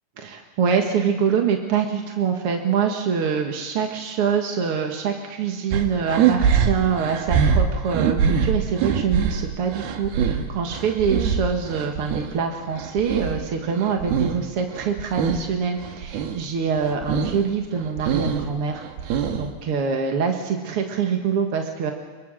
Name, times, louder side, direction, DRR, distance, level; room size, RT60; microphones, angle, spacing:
voice 1, 0.2-21.9, right 6 dB, 55° right, 3 dB, 1.7 m, -25 dB
sound 1, 5.7-12.3 12.7-14.5 14.7-15.5 15.8-16.4 16.8-17.4 17.8-19.6, right 7 dB, 80° right, 3.3 m, -23 dB
25.0 x 23.5 x 6.3 m, 1.4 s
omnidirectional pair, 4.5 m